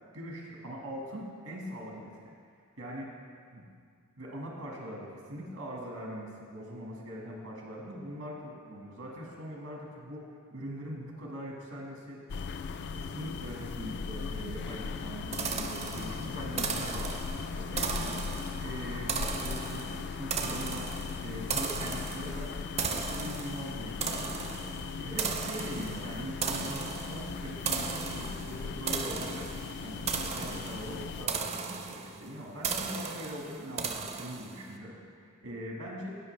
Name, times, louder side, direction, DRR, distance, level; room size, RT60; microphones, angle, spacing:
voice 1, 0.1-2.3 2.8-3.1 3.5-3.7 4.2-10.2 10.5-12.2 12.9-17.1 17.5-18.2 18.6-20.9 21.2-22.5 23.2-24.4 24.9-29.5 29.8-36.1, equal, 80° right, -2 dB, 1.8 m, -42 dB
sound 1, 12.3-31.3, left 5 dB, 50° left, 0.3 m, -38 dB
sound 2, 15.3-34.7, right 5 dB, 30° right, 0.5 m, -36 dB
17.0 x 6.2 x 3.3 m, 2.1 s
head